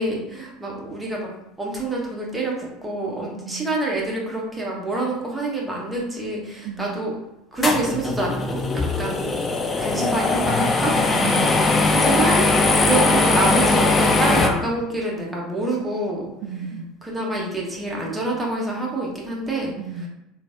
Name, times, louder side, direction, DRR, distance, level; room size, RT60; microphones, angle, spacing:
voice 1, 0.0-1.3 1.6-7.1 7.5-9.4 9.8-10.9 11.9-12.5 12.8-16.3 17.0-20.1, right 2 dB, 10° right, -3 dB, 0.9 m, -27 dB
voice 2, 3.2-3.6 6.6-7.0 11.1-11.7 16.4-16.9 19.8-20.1, right 6 dB, 55° right, 1 dB, 0.3 m, -33 dB
sound 1, 7.6-14.5, left 3 dB, 20° left, 0.5 m, -20 dB
3.1 x 2.3 x 2.6 m, 0.88 s
figure-of-eight pair, 70°, 0 cm